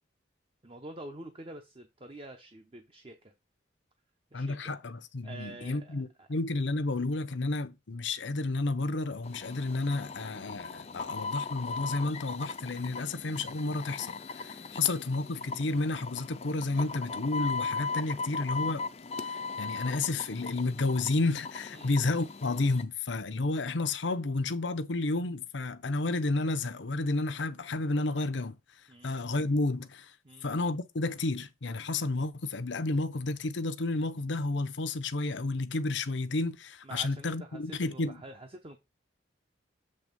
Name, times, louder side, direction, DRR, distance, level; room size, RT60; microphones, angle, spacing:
voice 1, 0.6-3.3 4.3-4.8 5.2-6.3 12.9-13.1 21.7-22.1 28.9-29.1 30.2-30.5 36.8-38.8, right 2 dB, 30° right, 0.8 m, -47 dB
voice 2, 4.3-18.8 19.2-28.6 29.0-30.1 30.4-38.2, left 2 dB, 75° left, 0.8 m, -31 dB
sound 1, 9.2-22.8, left 4 dB, 35° left, 0.5 m, -38 dB
7.7 x 3.5 x 5.2 m
head